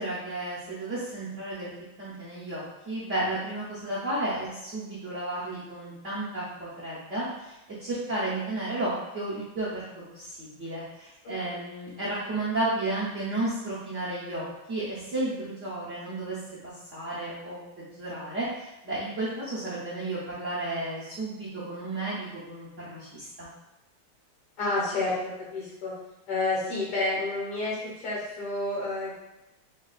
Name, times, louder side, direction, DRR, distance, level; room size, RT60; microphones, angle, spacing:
voice 1, 0.0-1.7 2.0-23.5, right 2 dB, 55° right, -10 dB, 0.9 m, -33 dB
voice 2, 11.2-11.6 24.6-25.9 26.3-29.1, left 2 dB, 80° left, -6 dB, 1.9 m, -30 dB
5.0 x 2.3 x 2.3 m, 0.92 s
omnidirectional pair, 2.2 m